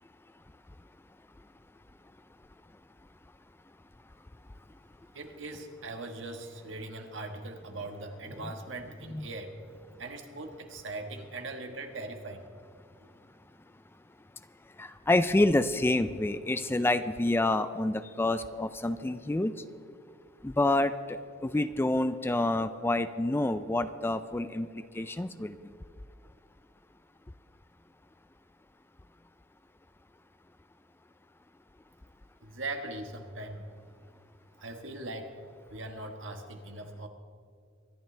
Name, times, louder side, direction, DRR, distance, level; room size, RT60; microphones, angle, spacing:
voice 1, 5.1-9.6 10.0-12.5 32.4-33.7 34.6-35.3 35.7-37.1, right 2 dB, 70° right, 5 dB, 1.4 m, -40 dB
voice 2, 14.8-19.5 20.4-25.6, left 2 dB, 10° left, 12 dB, 0.4 m, -28 dB
24.0 x 11.5 x 3.3 m, 2.2 s
head